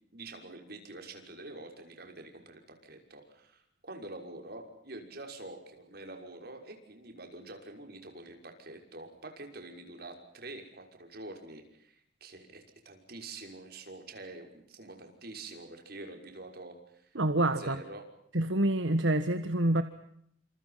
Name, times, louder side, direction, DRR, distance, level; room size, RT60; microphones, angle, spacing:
voice 1, 0.1-18.0, right 2 dB, 55° right, 4 dB, 6.0 m, -46 dB
voice 2, 17.1-17.8 18.3-19.8, right 1 dB, 80° right, 9 dB, 1.6 m, -27 dB
29.0 x 27.5 x 5.9 m, 0.71 s
head